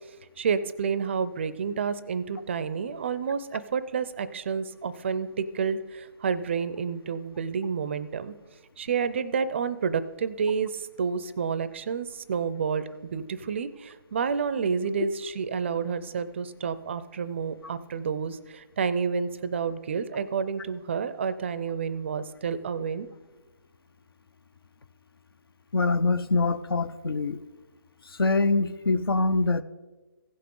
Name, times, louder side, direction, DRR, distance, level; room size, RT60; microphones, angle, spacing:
voice 1, 0.4-8.3 8.8-23.1, right 6 dB, 30° right, 14 dB, 0.4 m, -29 dB
voice 2, 25.7-27.4 28.2-29.6, left 3 dB, 75° left, 13 dB, 0.7 m, -24 dB
15.5 x 5.7 x 3.8 m, 1.2 s
hypercardioid pair, 160°, 12 cm